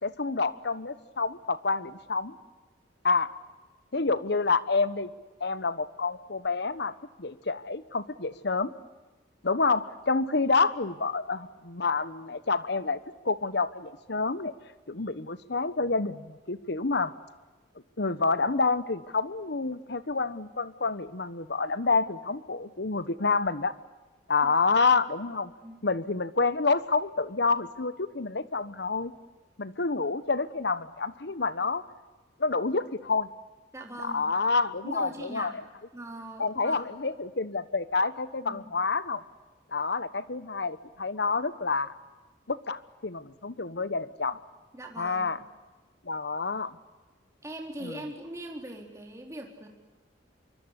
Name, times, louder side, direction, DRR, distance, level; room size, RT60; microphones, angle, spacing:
voice 1, 0.0-2.3 3.0-3.3 3.9-5.1 5.4-6.9 7.2-8.7 9.4-13.0 13.2-14.5 14.9-17.1 18.0-23.7 24.3-25.5 25.8-29.1 29.6-31.8 32.4-33.3 34.0-35.5 36.4-39.2 39.7-41.9 42.5-44.4 45.0-45.4 46.0-46.8 47.8-48.0, left 4 dB, 65° left, 15 dB, 1.2 m, -28 dB
voice 2, 33.7-34.3 34.8-35.6 35.9-36.8 38.4-38.7 44.7-45.3 47.4-49.7, right 1 dB, 15° right, 2 dB, 4.0 m, -41 dB
26.0 x 24.0 x 8.4 m, 1.2 s
head